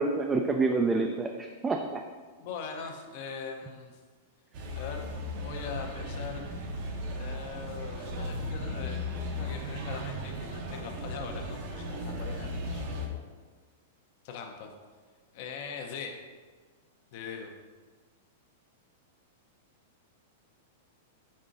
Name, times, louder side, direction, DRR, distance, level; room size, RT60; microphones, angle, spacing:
voice 1, 0.0-2.0, right 3 dB, 15° right, 3 dB, 0.3 m, -28 dB
voice 2, 2.4-4.0 4.7-5.1 5.4-6.5 7.2-9.0 9.3-13.2 14.2-14.7 15.3-16.2 17.1-17.5, left 5 dB, 55° left, 3 dB, 0.7 m, -41 dB
sound 1, 4.5-13.1, left 1 dB, 55° right, 0.7 m, -36 dB
5.4 x 3.6 x 2.5 m, 1.4 s
hypercardioid pair, 115°, 0 cm